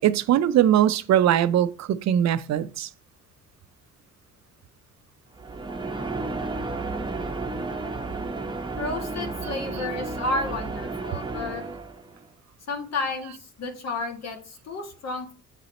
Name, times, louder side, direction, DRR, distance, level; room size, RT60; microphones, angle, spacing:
voice 1, 0.0-2.9, right 11 dB, 60° right, 0.5 m, -21 dB
sound 1, 5.3-12.2, right 3 dB, 15° right, 0.8 m, -32 dB
voice 2, 8.8-11.6 12.7-15.3, left 2 dB, 60° left, 1.7 m, -31 dB
7.5 x 4.0 x 4.1 m
cardioid pair, 90°, 30 cm